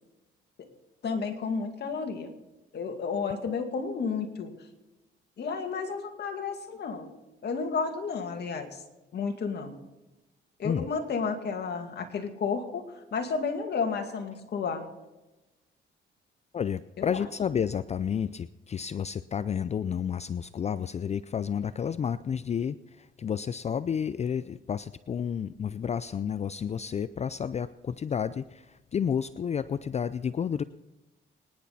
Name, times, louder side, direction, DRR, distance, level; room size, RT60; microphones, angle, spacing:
voice 1, 1.0-2.3 2.7-4.5 5.4-7.1 7.4-8.8 9.1-9.8 10.6-12.8 13.1-14.9 17.0-17.3, left 5 dB, 55° left, 5 dB, 2.3 m, -32 dB
voice 2, 16.5-30.6, left 7 dB, 35° left, 15 dB, 0.4 m, -31 dB
24.5 x 10.5 x 4.2 m, 1.0 s
cardioid pair, 90°, 20 cm